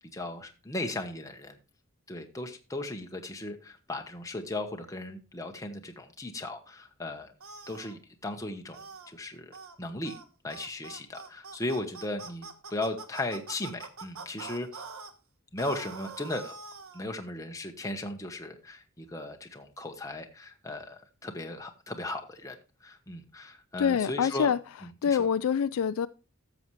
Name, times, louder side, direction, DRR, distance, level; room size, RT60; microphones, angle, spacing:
voice 1, 0.1-1.6 2.1-7.3 7.7-8.8 9.1-10.2 10.4-14.8 15.5-16.6 16.9-22.6 22.8-24.5 25.0-25.3, left 2 dB, 15° left, 1.0 m, -37 dB
sound 1, 7.4-7.9 8.7-9.1 9.5-9.8 10.0-10.2 10.5-15.1 15.6-17.0, right 4 dB, 80° right, 1.2 m, -44 dB
voice 2, 23.8-24.6 25.0-26.1, left 7 dB, 80° left, 0.3 m, -25 dB
13.0 x 7.0 x 3.1 m
head